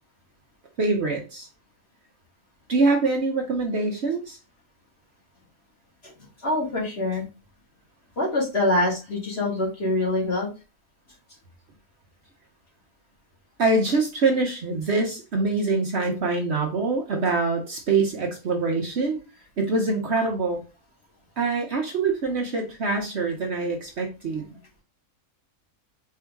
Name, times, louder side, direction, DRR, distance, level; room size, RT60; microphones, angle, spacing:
voice 1, 0.8-1.5 2.7-4.4 13.6-19.2 19.6-20.6 21.4-24.5, right 3 dB, 55° right, 1 dB, 1.0 m, -24 dB
voice 2, 6.4-7.3 8.2-10.5, left 2 dB, 45° left, -3 dB, 2.0 m, -25 dB
4.5 x 2.8 x 3.4 m, 0.30 s
omnidirectional pair, 1.5 m